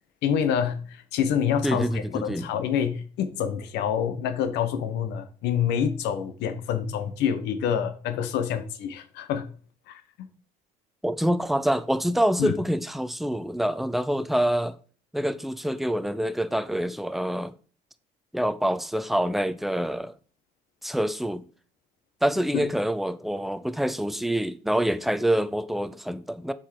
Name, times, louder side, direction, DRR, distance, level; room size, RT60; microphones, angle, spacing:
voice 1, 0.2-9.5 9.9-10.3 12.4-12.6 22.5-22.7, left 8 dB, 85° left, 1.2 m, -27 dB
voice 2, 1.6-2.5 11.0-14.8 15.1-17.5 18.3-20.1 20.8-21.5 22.2-26.5, equal, ahead, 0.5 m, -26 dB
7.2 x 4.8 x 4.7 m
cardioid pair, 110°, 17 cm